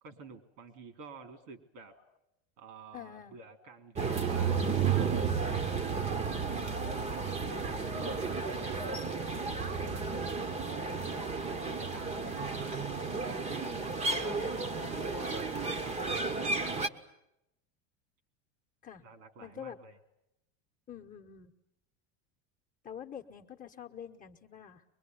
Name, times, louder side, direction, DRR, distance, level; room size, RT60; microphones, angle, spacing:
voice 1, 0.0-2.0 2.6-6.3 7.0-10.2 10.6-11.1 11.5-12.7 13.5-14.6 14.8-16.0 16.7-16.9 19.0-20.0, right 4 dB, 80° right, 9 dB, 3.5 m, -50 dB
voice 2, 2.9-3.4 14.2-14.5 14.8-15.3 15.7-16.2 18.8-19.0 19.4-19.8 20.9-21.5 22.8-24.8, left 8 dB, 20° left, 5 dB, 1.2 m, -47 dB
sound 1, 4.0-16.9, right 4 dB, 20° right, 1.0 m, -33 dB
23.5 x 21.5 x 9.5 m, 0.84 s
supercardioid pair, 145°, 37 cm